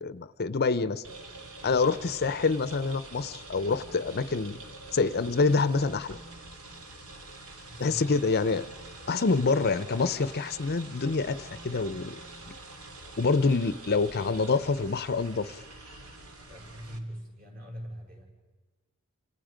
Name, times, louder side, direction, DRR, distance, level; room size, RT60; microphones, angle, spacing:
voice 1, 0.0-1.0 1.6-4.6 4.9-6.2 7.8-8.6 9.1-12.2 12.5-12.6 13.2-15.6, left 4 dB, 45° left, 14 dB, 0.7 m, -26 dB
sound 1, 1.0-17.0, right 2 dB, 70° right, 2.8 m, -46 dB
voice 2, 7.7-8.2 16.5-18.2, equal, 40° right, -1 dB, 6.7 m, -42 dB
28.5 x 27.0 x 5.1 m, 1.3 s
head